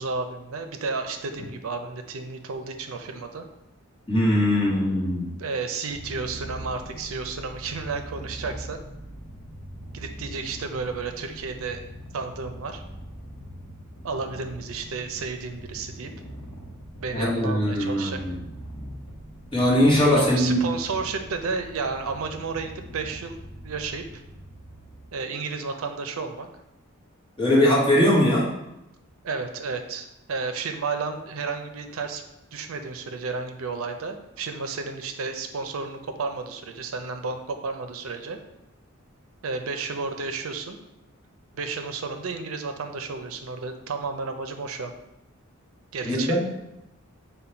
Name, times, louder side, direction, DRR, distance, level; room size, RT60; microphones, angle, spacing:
voice 1, 0.0-3.4 5.4-8.8 9.9-11.8 12.1-12.8 14.0-16.1 17.0-18.2 20.1-24.2 25.1-26.5 29.2-32.2 32.5-38.4 39.4-40.8 41.5-44.9 45.9-46.4, right 4 dB, 75° right, 7 dB, 0.5 m, -32 dB
voice 2, 4.1-5.3 17.1-18.3 19.5-20.6 27.4-28.5 46.0-46.4, left 1 dB, 25° left, -5 dB, 1.1 m, -21 dB
Purr, 5.9-25.2, equal, 80° left, 0.8 m, -42 dB
5.4 x 2.2 x 4.4 m, 0.89 s
head